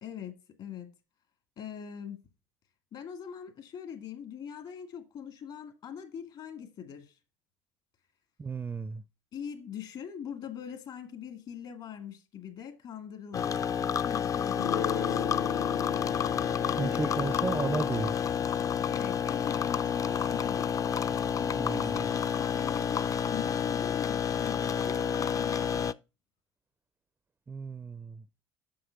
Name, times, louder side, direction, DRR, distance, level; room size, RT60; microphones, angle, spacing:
voice 1, 0.0-0.9 1.6-2.2 2.9-7.2 9.3-13.6 13.9-15.4 16.7-17.5 18.9-20.8 21.4-25.9, left 8 dB, 55° left, 2.1 m, -42 dB
voice 2, 8.4-9.0 16.8-18.2 21.6-22.0 27.5-28.2, right 4 dB, 20° right, 0.4 m, -34 dB
sound 1, 13.3-25.9, left 7 dB, 35° left, 0.5 m, -29 dB
Guitar, 14.6-20.1, left 8 dB, 75° left, 1.2 m, -39 dB
7.8 x 6.2 x 5.8 m
hypercardioid pair, 65°, 10 cm